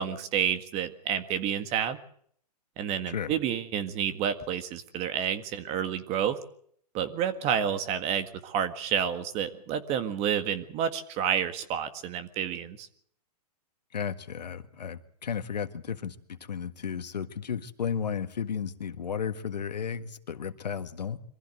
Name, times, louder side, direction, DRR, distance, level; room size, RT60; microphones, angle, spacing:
voice 1, 0.0-2.0 2.8-6.4 6.9-12.9, right 8 dB, 30° right, 10 dB, 1.8 m, -29 dB
voice 2, 13.9-21.2, left 7 dB, 85° left, 10 dB, 1.7 m, -34 dB
23.5 x 15.0 x 7.9 m, 0.64 s
hypercardioid pair, 135°, 21 cm